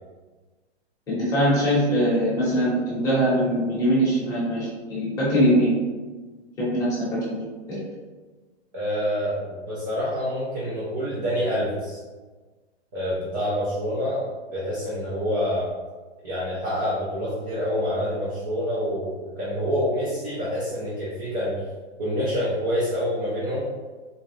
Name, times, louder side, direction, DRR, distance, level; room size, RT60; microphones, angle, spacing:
voice 1, 1.1-5.8 6.6-7.8, equal, 10° left, -10 dB, 0.9 m, -22 dB
voice 2, 8.7-12.0 12.9-15.7 16.2-21.5 22.0-23.6, equal, 20° right, -8 dB, 0.5 m, -27 dB
3.9 x 2.3 x 3.0 m, 1.3 s
hypercardioid pair, 160°, 35 cm